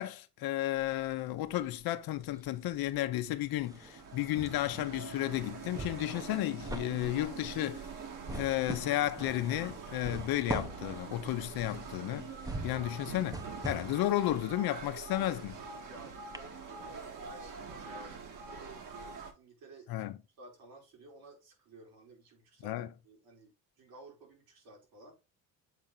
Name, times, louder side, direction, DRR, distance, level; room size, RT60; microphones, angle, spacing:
voice 1, 0.0-7.9 8.3-12.3 12.6-15.6 19.9-20.2 22.6-22.9, left 14 dB, 75° left, 0.9 m, -33 dB
sound 1, 0.7-1.9 2.2-15.9 16.3-16.4, right 2 dB, 10° right, 0.8 m, -44 dB
sound 2, 3.5-19.3, right 5 dB, 60° right, 1.9 m, -45 dB
voice 2, 15.7-20.1 20.4-25.2, right 2 dB, 75° right, 4.5 m, -54 dB
7.8 x 4.4 x 3.9 m
cardioid pair, 115°, 36 cm